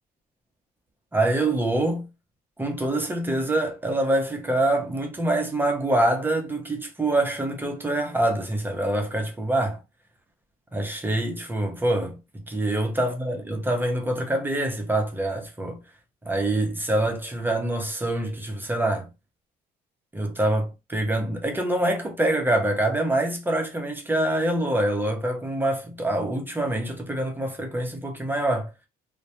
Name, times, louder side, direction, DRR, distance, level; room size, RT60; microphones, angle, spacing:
voice 1, 1.1-2.1 2.6-9.8 10.7-15.8 16.2-19.1 20.1-28.7, right 1 dB, 10° right, 0.6 m, -25 dB
2.1 x 2.1 x 2.8 m
cardioid pair, 110°, 17 cm